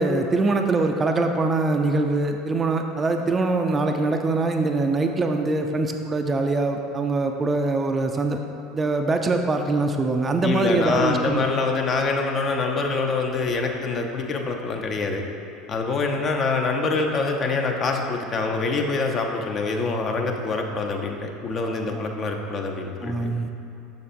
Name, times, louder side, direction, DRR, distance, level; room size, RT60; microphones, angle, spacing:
voice 1, 0.0-8.4 8.7-11.4 21.9-22.0 23.0-23.5, right 3 dB, 25° right, 4 dB, 0.4 m, -23 dB
voice 2, 10.4-15.2 15.7-23.1, left 3 dB, 35° left, 2 dB, 0.6 m, -25 dB
6.8 x 6.5 x 2.6 m, 2.7 s
figure-of-eight pair, 70°, 0 cm